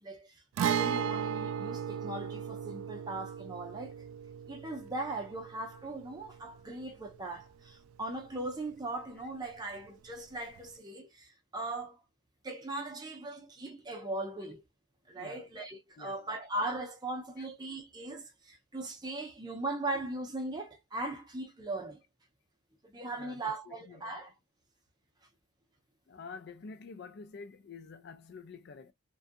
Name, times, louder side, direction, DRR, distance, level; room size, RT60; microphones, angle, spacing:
voice 1, 0.0-3.9 4.5-12.0 12.4-14.6 15.1-22.0 22.8-24.3, right 2 dB, 20° right, 0.6 m, -39 dB
Guitar, 0.6-8.2 8.5-8.6 10.6-10.7, right 8 dB, 85° right, 0.3 m, -36 dB
voice 2, 15.1-15.5 16.0-16.3 17.4-17.5 23.1-24.1 26.1-28.9, left 4 dB, 55° left, 0.4 m, -48 dB
2.5 x 2.3 x 2.5 m
head